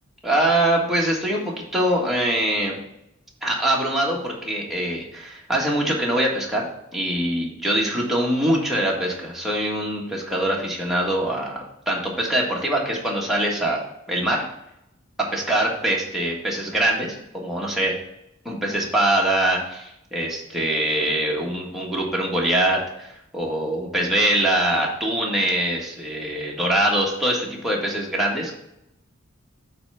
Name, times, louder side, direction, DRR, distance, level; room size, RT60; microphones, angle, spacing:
voice 1, 0.2-2.8 3.4-6.6 6.9-11.6 11.9-13.8 14.1-14.4 15.3-17.9 18.4-23.1 23.3-28.5, right 1 dB, ahead, -4 dB, 1.6 m, -23 dB
8.3 x 3.4 x 5.5 m, 0.84 s
head